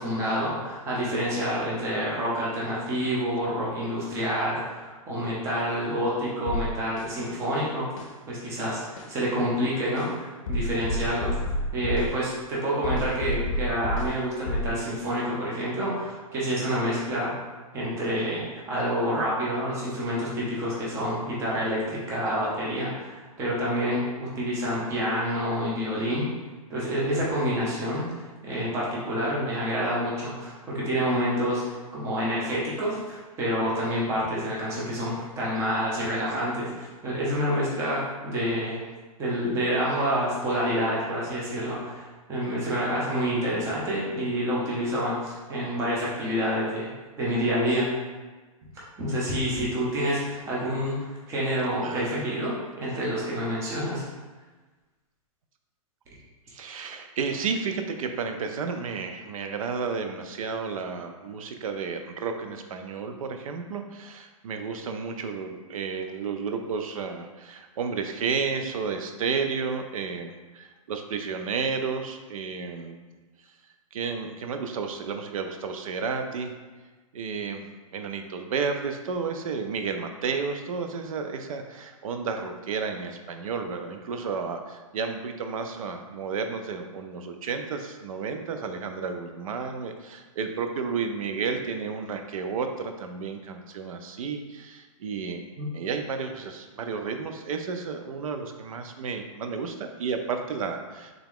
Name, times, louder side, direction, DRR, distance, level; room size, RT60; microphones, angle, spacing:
voice 1, 0.0-17.3 17.7-26.3 26.7-28.1 28.4-38.8 39.2-46.9 47.2-47.9 49.0-54.1 95.6-95.7, equal, 15° right, -6 dB, 0.8 m, -28 dB
sound 1, 6.5-7.1 8.0-8.1 9.0-9.1 10.0-10.1 10.5-12.1 12.8-14.1 14.5-14.7, equal, 60° left, 0.6 m, -29 dB
voice 2, 51.8-52.4 56.5-73.0 73.9-76.5 77.1-95.4 95.7-101.1, right 5 dB, 70° right, 6 dB, 0.5 m, -32 dB
3.6 x 2.8 x 3.6 m, 1.3 s
hypercardioid pair, 160°, 18 cm